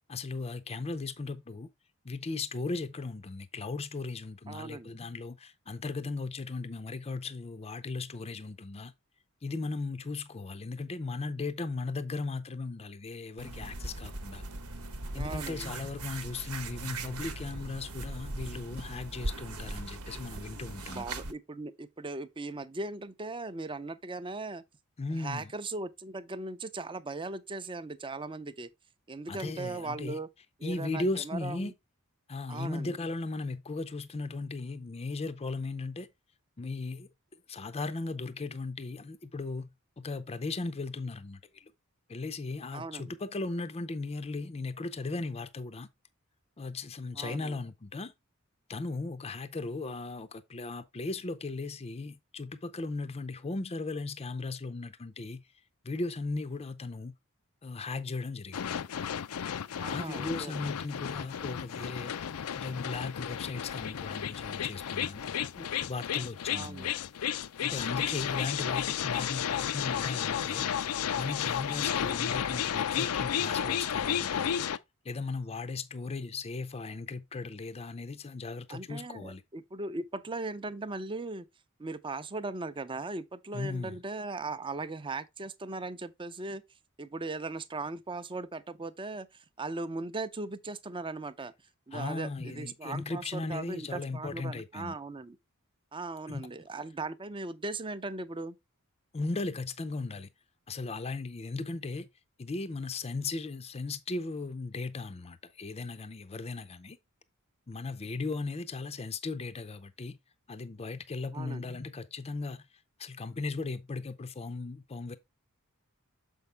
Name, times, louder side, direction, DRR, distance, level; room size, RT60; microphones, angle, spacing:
voice 1, 0.1-1.7 2.0-8.9 9.4-14.4 15.1-21.1 25.0-25.5 29.3-30.2 30.6-31.7 32.3-36.1 36.6-37.1 37.5-39.7 40.0-41.7 42.1-45.9 46.6-48.1 48.7-55.4 55.8-57.1 57.6-58.8 59.8-62.1 62.5-66.9 67.6-70.7 71.2-74.4 75.0-79.4 83.5-84.0 91.9-95.0 96.3-96.5 99.1-100.3 100.7-102.1 102.4-107.0 107.7-110.2 110.5-112.7 113.0-115.2, left 3 dB, 30° left, 0.5 m, -37 dB
voice 2, 4.5-4.9 15.1-15.7 20.9-24.6 25.2-28.7 29.1-30.3 30.6-31.7 32.5-32.9 42.7-43.1 47.1-47.6 59.8-60.5 66.5-66.9 78.7-81.5 81.8-86.6 87.0-91.5 91.9-95.4 95.9-98.6 111.3-111.7, right 3 dB, 25° right, 0.5 m, -38 dB
sound 1, 13.4-21.3, right 2 dB, 85° right, 1.0 m, -39 dB
sound 2, 58.5-74.8, left 9 dB, 90° left, 0.5 m, -33 dB
6.7 x 5.5 x 3.3 m
head